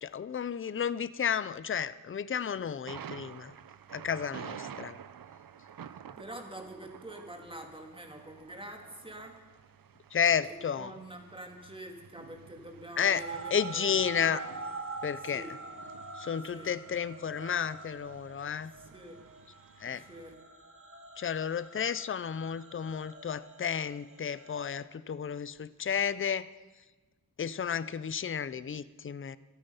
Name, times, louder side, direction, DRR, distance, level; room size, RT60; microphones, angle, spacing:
voice 1, 0.0-3.5 3.9-5.0 10.1-10.9 13.0-13.2 13.5-14.4 15.0-15.4 16.1-18.7 19.8-20.0 21.2-26.5 27.4-29.4, left 7 dB, 35° left, 16 dB, 0.5 m, -32 dB
Thunder, 2.9-20.3, right 8 dB, 70° right, 0.7 m, -50 dB
voice 2, 6.2-9.4 10.4-14.4 15.2-15.5 16.5-16.7 18.7-19.2 20.1-20.4, right 1 dB, 15° right, 3 dB, 2.3 m, -46 dB
sound 1, 13.1-24.7, right 3 dB, 35° right, 1.8 m, -45 dB
26.5 x 9.0 x 5.6 m, 1.2 s
wide cardioid pair, 95°, 36 cm